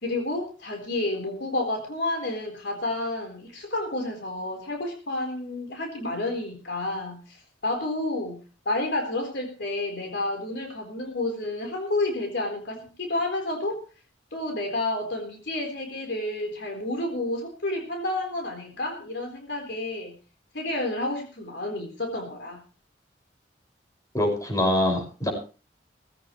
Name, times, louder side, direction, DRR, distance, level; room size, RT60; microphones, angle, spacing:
voice 1, 0.0-8.4 8.7-13.8 14.3-20.2 20.5-22.6, left 2 dB, 65° left, 3 dB, 4.0 m, -30 dB
voice 2, 24.1-25.3, left 1 dB, 20° left, 2 dB, 5.6 m, -24 dB
19.5 x 15.5 x 3.1 m, 0.36 s
head